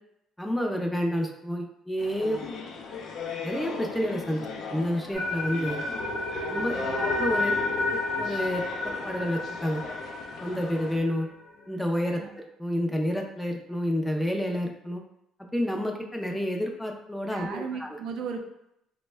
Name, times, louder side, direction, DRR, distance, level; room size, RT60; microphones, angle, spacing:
voice 1, 0.4-2.4 3.4-5.8 6.5-7.5 7.9-9.8 10.4-11.3 11.7-15.0 15.4-17.9, equal, 5° left, 2 dB, 0.4 m, -29 dB
sound 1, 2.0-11.0, left 5 dB, 60° left, 0.5 m, -38 dB
sound 2, 5.1-11.2, left 2 dB, 35° left, 0.9 m, -31 dB
voice 2, 6.7-7.1 12.2-12.3 17.3-18.4, right 5 dB, 65° right, 4 dB, 0.5 m, -36 dB
3.3 x 2.1 x 3.2 m, 0.79 s
cardioid pair, 120°, 0 cm